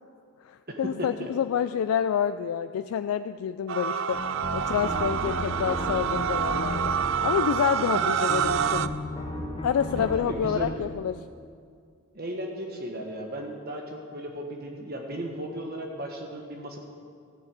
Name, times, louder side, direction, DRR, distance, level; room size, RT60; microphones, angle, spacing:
voice 1, 0.4-4.2 4.5-6.9 7.2-9.0 9.6-11.2, left 8 dB, 80° left, 11 dB, 0.3 m, -28 dB
voice 2, 1.0-1.3 9.9-10.8 12.1-16.8, right 1 dB, 45° right, 2 dB, 1.3 m, -36 dB
sound 1, 3.7-8.9, right 8 dB, 65° right, 0.4 m, -27 dB
sound 2, 4.1-10.7, left 1 dB, 25° left, 1.1 m, -35 dB
sound 3, 4.6-8.1, right 2 dB, 10° right, 3.7 m, -41 dB
14.0 x 6.7 x 8.1 m, 2.2 s
head